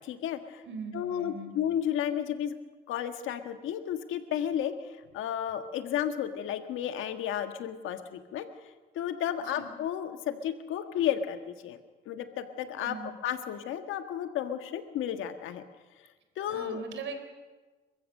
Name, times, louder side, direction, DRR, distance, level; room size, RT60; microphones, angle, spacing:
voice 1, 0.0-0.6 0.9-2.6 2.9-4.7 5.1-8.5 8.9-11.8 12.1-13.0 13.2-15.6 16.4-16.8, left 10 dB, 85° left, 8 dB, 1.6 m, -32 dB
voice 2, 0.6-1.6 9.5-9.7 12.8-13.1 16.5-17.2, right 4 dB, 70° right, 8 dB, 3.8 m, -40 dB
28.5 x 15.0 x 6.6 m, 1.3 s
cardioid pair, 90°, 20 cm